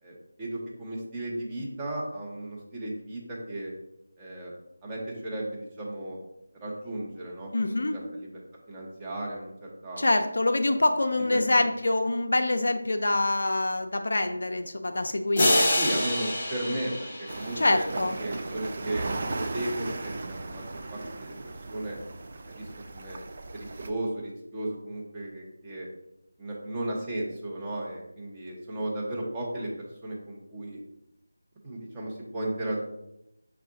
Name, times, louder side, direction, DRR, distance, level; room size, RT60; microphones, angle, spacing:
voice 1, 0.0-3.7 4.2-4.5 4.8-6.2 6.6-8.4 8.7-10.0 10.6-10.9 11.3-11.4 15.7-17.9 18.2-20.6 20.9-21.4 21.7-22.0 22.5-23.2 23.5-25.9 26.4-29.7 30.0-30.8 31.6-32.8, right 1 dB, 15° right, -4 dB, 0.8 m, -35 dB
voice 2, 7.5-8.0 10.0-15.7 17.6-18.2, left 2 dB, 60° left, 6 dB, 0.4 m, -25 dB
sound 1, 15.4-18.0, left 1 dB, 25° left, 0.7 m, -26 dB
sound 2, 17.3-23.9, right 3 dB, 35° right, 0.4 m, -37 dB
5.4 x 2.4 x 3.6 m, 0.86 s
figure-of-eight pair, 165°, 0 cm